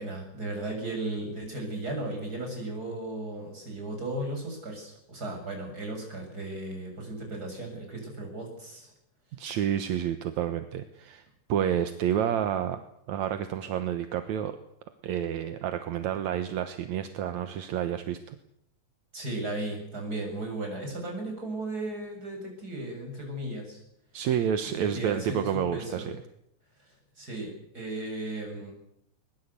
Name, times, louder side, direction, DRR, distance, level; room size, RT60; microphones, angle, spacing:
voice 1, 0.0-8.9 19.1-23.8 24.6-26.1 27.2-28.7, right 2 dB, 30° right, 1 dB, 7.6 m, -35 dB
voice 2, 9.4-12.8 13.1-14.6 15.0-18.4 24.1-26.1, right 9 dB, 75° right, 9 dB, 2.4 m, -29 dB
22.0 x 21.0 x 8.3 m, 0.77 s
omnidirectional pair, 3.4 m